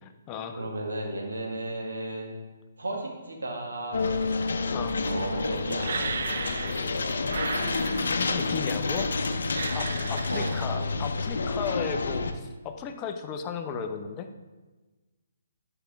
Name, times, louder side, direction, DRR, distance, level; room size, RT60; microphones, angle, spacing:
voice 1, 0.0-0.6 4.7-5.0 8.2-9.1 9.7-14.3, left 6 dB, 25° left, 6 dB, 0.7 m, -35 dB
voice 2, 0.6-2.3 2.8-4.0 5.0-5.9 10.3-10.9, right 2 dB, 90° right, 0 dB, 1.7 m, -34 dB
sound 1, 3.9-12.3, left 3 dB, 75° left, 0.7 m, -29 dB
sound 2, 5.8-6.9 7.2-8.3 9.5-10.7, right 5 dB, 65° right, 0.6 m, -34 dB
9.6 x 5.9 x 3.5 m, 1.2 s
hypercardioid pair, 145°, 0 cm